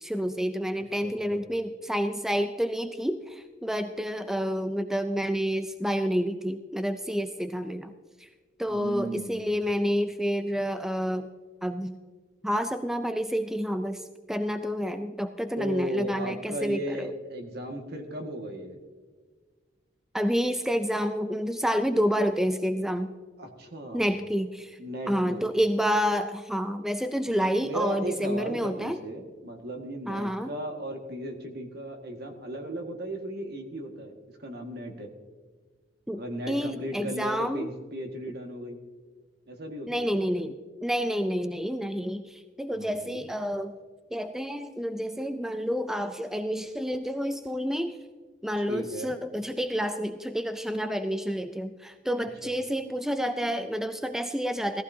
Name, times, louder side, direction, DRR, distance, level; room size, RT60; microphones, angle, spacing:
voice 1, 0.0-7.9 8.2-8.3 8.6-11.3 11.6-12.0 12.4-14.0 14.3-17.1 20.1-23.1 23.9-24.8 25.1-29.0 30.1-30.5 36.1-37.7 39.9-43.8 44.1-48.0 48.4-54.8, equal, 5° right, 8 dB, 0.4 m, -29 dB
voice 2, 1.0-1.5 8.6-9.6 15.6-18.8 23.4-24.1 24.8-25.5 27.6-34.1 34.4-35.1 36.1-38.8 39.5-40.5 42.8-43.3 48.6-49.2 52.4-52.5, right 1 dB, 60° right, 3 dB, 1.8 m, -36 dB
17.5 x 14.5 x 2.8 m, 1.4 s
head